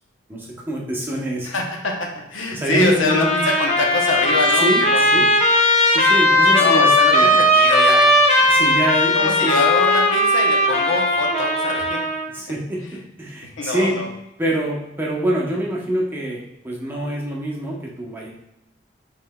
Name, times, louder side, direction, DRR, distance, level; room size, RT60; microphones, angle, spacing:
voice 1, 0.3-1.6 2.5-3.4 4.6-5.3 5.9-7.3 8.4-9.6 12.3-14.0 14.4-18.3, right 1 dB, 10° right, -3 dB, 0.7 m, -25 dB
voice 2, 1.4-5.0 6.6-8.4 9.1-12.1 12.8-12.9 13.4-14.1, left 2 dB, 75° left, 1 dB, 0.8 m, -24 dB
Trumpet, 3.1-12.3, left 1 dB, 30° left, 0.6 m, -17 dB
5.6 x 3.8 x 2.2 m, 0.86 s
head